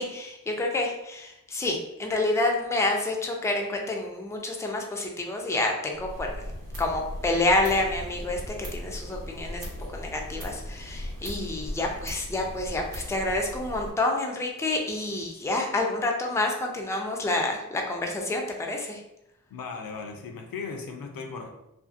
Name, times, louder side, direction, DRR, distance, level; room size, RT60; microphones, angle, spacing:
voice 1, 0.0-6.3 6.8-9.7 9.9-19.0, left 2 dB, 10° left, 1 dB, 0.4 m, -28 dB
sound 1, 5.9-13.9, equal, 80° right, 0.9 m, -38 dB
voice 2, 19.5-21.5, left 4 dB, 75° left, 3 dB, 0.5 m, -37 dB
2.6 x 2.4 x 2.4 m, 0.86 s
wide cardioid pair, 70°, 35 cm